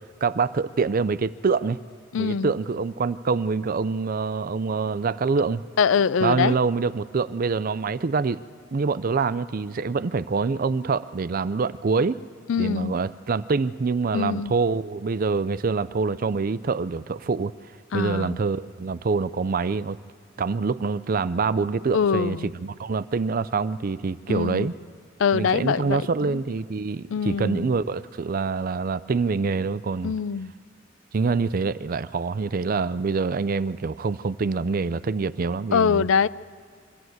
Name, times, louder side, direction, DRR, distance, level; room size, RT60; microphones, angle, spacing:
voice 1, 0.2-1.8 2.2-5.7 6.2-8.4 8.7-12.2 12.6-17.5 17.9-20.0 20.4-24.7 25.3-30.1 31.1-36.1, right 4 dB, 45° right, 15 dB, 0.5 m, -25 dB
voice 2, 2.1-2.5 5.8-6.6 12.5-13.0 14.1-14.5 17.9-18.4 21.9-22.5 24.3-24.7 25.2-26.4 27.1-27.7 30.0-30.5 35.7-36.3, left 6 dB, 85° left, 17 dB, 0.4 m, -23 dB
23.0 x 14.5 x 7.9 m, 2.2 s
head